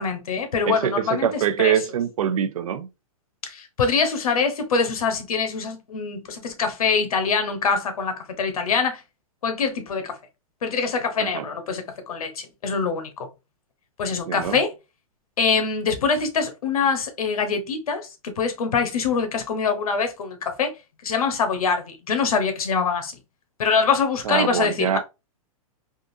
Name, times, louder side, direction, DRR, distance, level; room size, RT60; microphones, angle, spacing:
voice 1, 0.0-1.7 3.4-9.0 9.4-10.2 10.6-13.3 14.0-14.7 15.4-20.7 21.0-23.1 23.6-25.0, left 5 dB, 90° left, 1.0 m, -24 dB
voice 2, 0.7-2.9 11.3-11.5 14.3-14.6 24.2-25.0, right 9 dB, 75° right, 0.6 m, -24 dB
3.7 x 2.5 x 2.6 m
hypercardioid pair, 165°, 18 cm